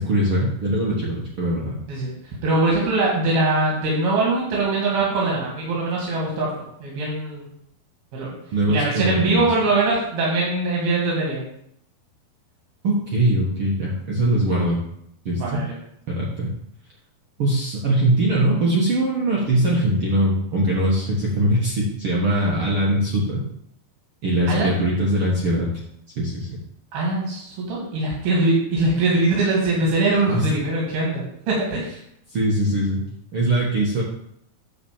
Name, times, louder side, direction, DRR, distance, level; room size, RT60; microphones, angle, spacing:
voice 1, 0.0-1.8 8.5-9.4 12.8-14.8 15.2-15.4 16.1-16.5 17.4-23.4 24.2-25.7 26.1-26.5 30.2-30.5 32.3-33.0 33.3-34.0, right 1 dB, 55° right, -4 dB, 1.7 m, -21 dB
voice 2, 1.9-6.5 6.8-7.5 8.1-8.3 8.7-11.4 15.3-15.7 24.5-24.7 26.9-32.0, right 2 dB, 85° right, -3 dB, 4.2 m, -22 dB
9.9 x 4.3 x 7.3 m, 0.72 s
omnidirectional pair, 4.3 m